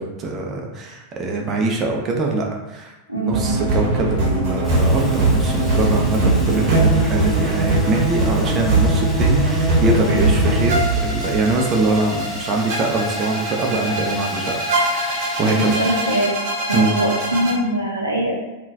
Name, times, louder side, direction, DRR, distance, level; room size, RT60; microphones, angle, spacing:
voice 1, 0.0-15.8 16.7-16.9, right 2 dB, 30° right, 0 dB, 0.5 m, -23 dB
voice 2, 3.1-3.5 10.1-10.3 15.4-16.3 16.7-18.3, right 1 dB, 85° right, -3 dB, 0.6 m, -22 dB
sound 1, 3.3-17.5, right 2 dB, 45° right, 0.9 m, -21 dB
Fire, 4.6-16.2, left 1 dB, 10° left, 0.8 m, -38 dB
3.7 x 2.3 x 2.6 m, 1.0 s
figure-of-eight pair, 90°, 0 cm